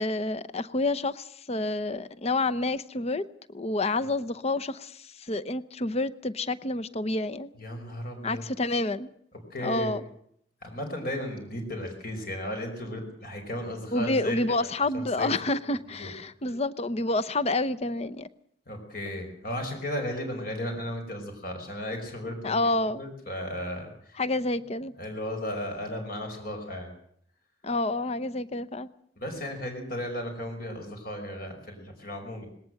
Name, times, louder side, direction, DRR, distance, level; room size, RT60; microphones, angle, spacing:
voice 1, 0.0-7.5 8.2-9.1 9.6-10.0 13.9-18.3 22.4-23.0 24.2-24.9 27.6-28.9, left 2 dB, 40° left, 13 dB, 0.8 m, -29 dB
voice 2, 7.6-8.4 9.5-9.9 10.6-14.7 15.2-15.3 16.0-16.1 16.5-16.6 18.7-24.2 25.0-26.9 29.2-32.5, left 1 dB, 55° left, 3 dB, 5.3 m, -35 dB
20.0 x 18.0 x 7.8 m, 0.66 s
head